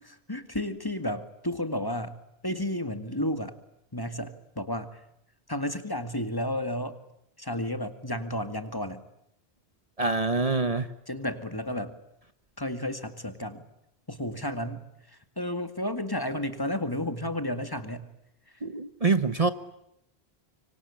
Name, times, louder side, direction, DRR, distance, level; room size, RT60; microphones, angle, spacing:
voice 1, 0.0-2.2 2.4-3.5 3.9-5.0 5.5-7.0 7.4-9.0 11.1-12.0 12.6-13.6 14.1-18.1 18.5-18.6, left 1 dB, 20° left, 9 dB, 2.0 m, -32 dB
voice 2, 10.0-10.9 18.6-19.5, right 3 dB, 35° right, 11 dB, 1.2 m, -25 dB
25.5 x 25.0 x 8.6 m, 0.80 s
omnidirectional pair, 1.1 m